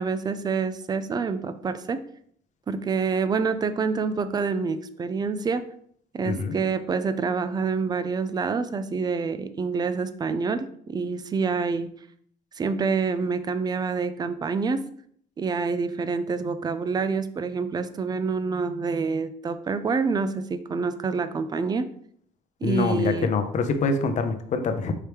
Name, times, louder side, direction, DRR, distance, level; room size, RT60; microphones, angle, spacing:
voice 1, 0.0-2.0 2.7-5.6 6.1-11.9 12.6-14.8 15.4-21.8 22.6-23.3, right 5 dB, 25° right, 12 dB, 0.3 m, -27 dB
voice 2, 6.2-6.6 22.6-24.9, left 4 dB, 45° left, 8 dB, 0.6 m, -25 dB
4.7 x 3.0 x 3.3 m, 0.64 s
cardioid pair, 110°, 17 cm